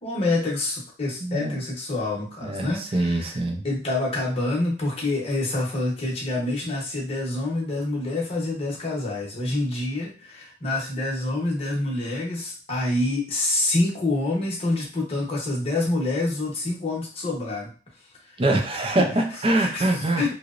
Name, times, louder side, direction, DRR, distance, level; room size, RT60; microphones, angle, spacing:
voice 1, 0.0-3.3 3.6-17.7 19.0-19.1 19.5-19.9 20.2-20.3, left 2 dB, 35° left, -3 dB, 0.8 m, -27 dB
voice 2, 1.2-1.6 2.4-3.6 18.4-20.3, right 2 dB, 30° right, 3 dB, 0.4 m, -24 dB
2.9 x 2.0 x 2.4 m, 0.37 s
head